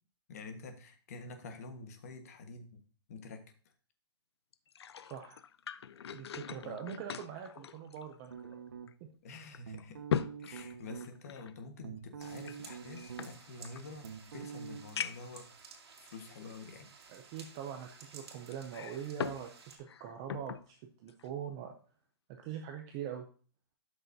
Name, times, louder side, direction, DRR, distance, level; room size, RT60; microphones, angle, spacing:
voice 1, 0.3-2.8 3.1-3.5 6.6-6.9 9.2-10.0 10.4-15.5 16.0-16.9, left 3 dB, 35° left, 6 dB, 1.3 m, -48 dB
sound 1, 4.5-8.5 8.9-9.0 9.5-11.5 12.4-13.8 14.4-14.5 15.0-15.4 16.1-16.2 18.5-19.5 19.8-20.7 21.1-21.3, left 8 dB, 75° left, 0.5 m, -40 dB
voice 2, 5.0-5.4 6.1-8.6 9.0-9.1 17.1-21.8 22.3-23.3, right 8 dB, 10° right, 4 dB, 0.3 m, -43 dB
sound 2, 8.3-9.1 9.6-11.1 11.6-13.5 13.7-14.8, right 7 dB, 55° right, 1.2 m, -46 dB
sound 3, 12.2-19.8, right 5 dB, 75° right, 2.4 m, -55 dB
12.0 x 6.3 x 2.6 m, 0.40 s
hypercardioid pair, 180°, 14 cm